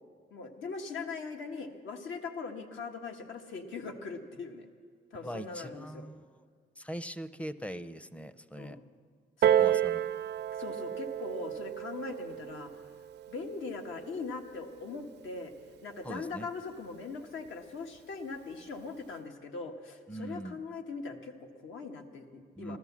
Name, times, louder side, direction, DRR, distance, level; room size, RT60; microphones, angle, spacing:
voice 1, 0.3-4.7 5.1-6.1 8.6-8.8 9.4-9.8 10.5-12.8 13.3-15.5 15.8-22.8, left 4 dB, 85° left, 3 dB, 1.4 m, -41 dB
voice 2, 5.2-6.2 6.8-8.8 9.6-10.0 16.0-16.5 20.1-20.6 22.6-22.8, right 1 dB, 5° left, 13 dB, 0.5 m, -41 dB
Piano, 9.4-14.6 15.4-15.5, right 10 dB, 60° right, 0.4 m, -31 dB
14.5 x 13.5 x 7.3 m, 2.1 s
cardioid pair, 105°, 20 cm